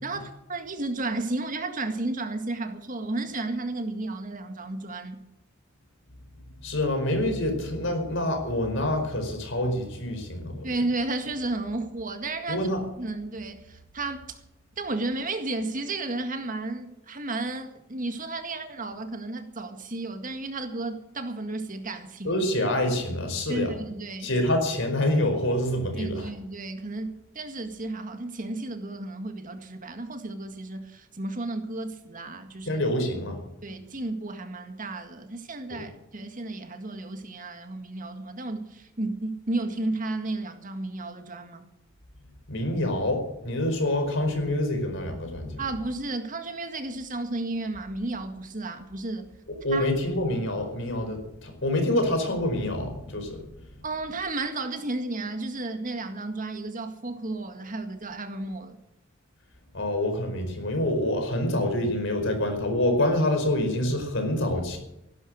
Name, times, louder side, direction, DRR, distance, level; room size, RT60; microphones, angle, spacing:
voice 1, 0.0-5.2 10.6-12.7 13.0-14.4 14.8-22.4 23.5-24.3 25.9-32.8 33.6-41.6 45.6-49.3 49.7-49.9 53.8-58.8, right 2 dB, 40° right, 1.9 m, -33 dB
voice 2, 6.6-10.7 12.5-12.8 22.2-23.7 24.2-26.3 32.7-33.4 35.8-35.9 42.5-45.6 49.6-53.4 59.7-64.8, left 1 dB, 65° left, 4.8 m, -26 dB
16.5 x 11.5 x 6.3 m
head